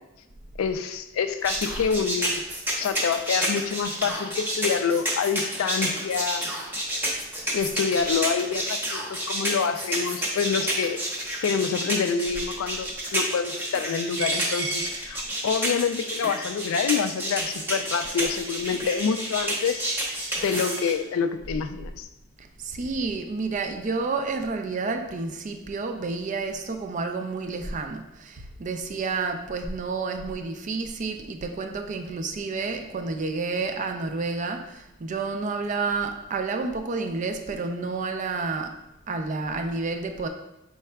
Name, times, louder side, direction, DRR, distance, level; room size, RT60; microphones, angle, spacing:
voice 1, 0.6-2.4 2.8-6.5 7.5-11.0 11.4-19.8 20.4-22.1, left 6 dB, 90° left, 9 dB, 0.4 m, -27 dB
sound 1, 1.4-20.9, right 1 dB, 10° right, 0.8 m, -29 dB
Coin (dropping), 14.2-20.9, right 3 dB, 90° right, 0.8 m, -37 dB
voice 2, 22.4-38.7 39.1-40.3, right 4 dB, 40° right, 6 dB, 0.4 m, -30 dB
4.6 x 4.2 x 2.2 m, 0.94 s
head